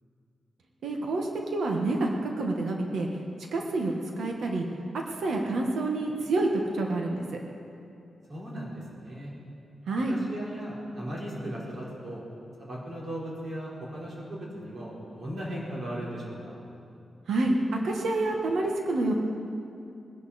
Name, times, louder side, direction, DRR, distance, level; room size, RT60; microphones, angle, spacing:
voice 1, 0.8-3.1 3.5-4.7 5.1-7.4 9.9-10.2 17.3-19.1, right 2 dB, 80° right, 1 dB, 1.5 m, -28 dB
voice 2, 8.3-9.3 10.1-12.2 12.7-16.6, equal, 45° right, -6 dB, 4.4 m, -37 dB
21.0 x 11.5 x 4.3 m, 2.6 s
wide cardioid pair, 140°, 0 cm